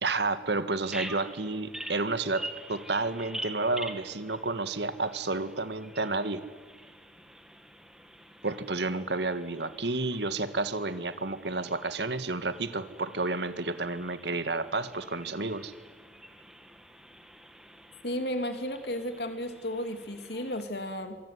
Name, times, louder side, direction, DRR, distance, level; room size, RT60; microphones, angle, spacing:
voice 1, 0.0-6.5 8.4-15.7, right 3 dB, 70° right, 11 dB, 1.8 m, -31 dB
Bird vocalization bird call bird song, 0.8-20.6, right 1 dB, 5° right, 1.9 m, -46 dB
voice 2, 18.0-21.2, equal, 65° left, 7 dB, 3.1 m, -33 dB
25.5 x 24.0 x 9.6 m, 1.4 s
head